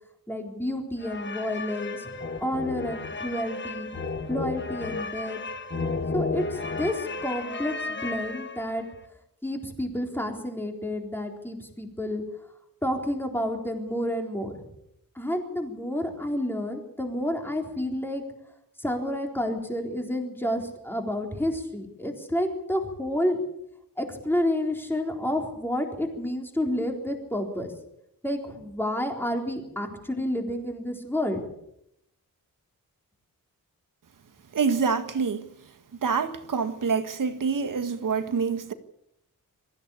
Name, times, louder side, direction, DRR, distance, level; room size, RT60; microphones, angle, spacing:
voice 1, 0.3-3.9 4.3-5.4 6.1-8.9 9.4-12.2 12.8-14.6 15.2-18.2 18.8-23.4 24.0-27.7 28.2-31.4, left 1 dB, 5° left, 3.9 m, -30 dB
sound 1, 1.0-8.9, left 3 dB, 30° left, 1.6 m, -33 dB
voice 2, 34.5-35.5 36.0-38.7, right 5 dB, 60° right, 1.8 m, -26 dB
23.0 x 15.0 x 8.5 m
wide cardioid pair, 160°, 36 cm